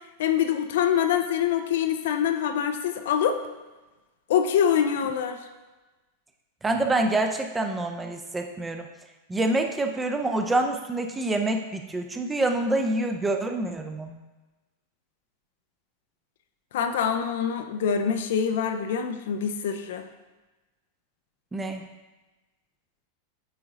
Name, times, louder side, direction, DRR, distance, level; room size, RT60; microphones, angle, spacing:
voice 1, 0.2-3.4 4.3-5.4 16.7-20.1, left 8 dB, 55° left, 7 dB, 0.5 m, -25 dB
voice 2, 6.6-8.9 9.3-14.2 21.5-21.8, right 2 dB, 10° right, 4 dB, 0.6 m, -26 dB
9.2 x 3.9 x 3.7 m, 1.2 s
figure-of-eight pair, 90°, 0 cm